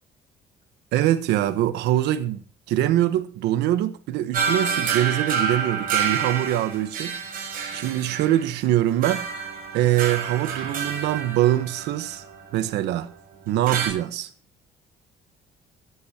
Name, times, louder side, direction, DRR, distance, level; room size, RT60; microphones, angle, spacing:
voice 1, 0.9-7.2 7.7-9.2 9.7-12.2 12.5-13.1 13.5-14.3, right 13 dB, 85° right, 1.2 m, -23 dB
sound 1, 4.3-13.0 13.7-13.9, right 6 dB, 55° right, 7.4 m, -28 dB
23.5 x 8.5 x 2.9 m
cardioid pair, 110°, 17 cm